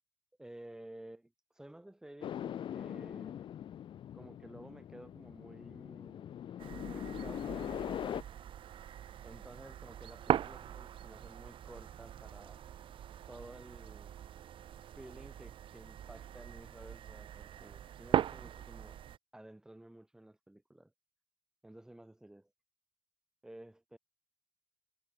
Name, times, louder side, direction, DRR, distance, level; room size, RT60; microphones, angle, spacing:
voice 1, 0.4-3.6 4.1-6.3 6.9-8.3 9.2-12.6 13.3-14.1 15.0-19.0 19.3-20.9 21.6-22.5 23.4-24.0, right 1 dB, 5° right, 4.1 m, -53 dB
sound 1, 2.2-8.2, left 10 dB, 55° left, 1.2 m, -42 dB
sound 2, 6.6-19.2, right 10 dB, 60° right, 3.5 m, -40 dB
cardioid pair, 125°, 10 cm